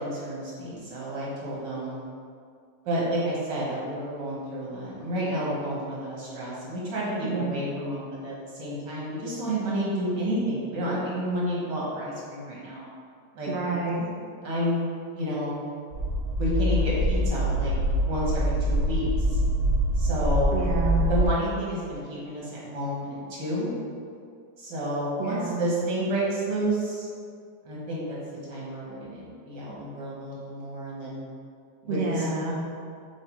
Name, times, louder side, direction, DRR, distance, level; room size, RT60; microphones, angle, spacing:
voice 1, 0.0-2.0 2.9-12.8 13.3-13.5 14.4-14.8 15.1-15.6 16.4-17.7 18.0-19.1 19.3-19.4 20.0-20.6 21.1-23.7 24.6-27.1 27.6-28.2 28.5-31.2 31.8-32.3, equal, 80° right, -6 dB, 2.3 m, -30 dB
voice 2, 13.5-14.1 20.5-21.0 25.2-25.6 31.9-32.6, right 4 dB, 50° right, -3 dB, 1.0 m, -29 dB
sound 1, 15.9-21.3, equal, 65° right, 0.6 m, -24 dB
8.0 x 3.0 x 4.7 m, 2.3 s
omnidirectional pair, 1.9 m